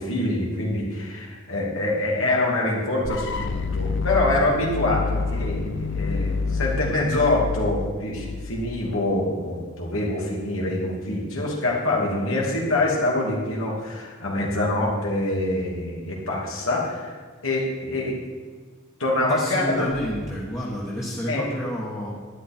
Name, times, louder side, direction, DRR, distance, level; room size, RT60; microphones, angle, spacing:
voice 1, 0.0-5.6 5.9-17.2 17.4-18.1 19.0-19.9 21.3-21.5, left 2 dB, 75° left, -3 dB, 2.7 m, -25 dB
sound 1, 3.0-9.0, left 4 dB, 60° left, 0.6 m, -28 dB
voice 2, 19.3-22.1, equal, 15° left, -7 dB, 1.5 m, -30 dB
11.5 x 10.5 x 4.4 m, 1.5 s
head